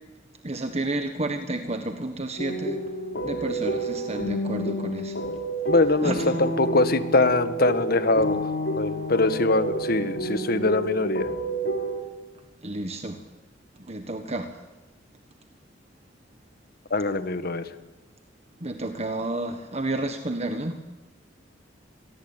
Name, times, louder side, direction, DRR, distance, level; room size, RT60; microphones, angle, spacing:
voice 1, 0.4-2.8 3.2-5.2 6.0-6.4 12.6-13.2 13.9-14.5 18.6-20.8, right 2 dB, 35° right, 7 dB, 1.5 m, -30 dB
sound 1, 2.4-12.0, right 1 dB, 70° left, 3.5 m, -30 dB
voice 2, 5.7-6.1 6.4-8.4 8.7-11.3 16.9-17.6, left 2 dB, 55° left, 11 dB, 1.6 m, -22 dB
26.5 x 20.0 x 9.1 m, 1.1 s
head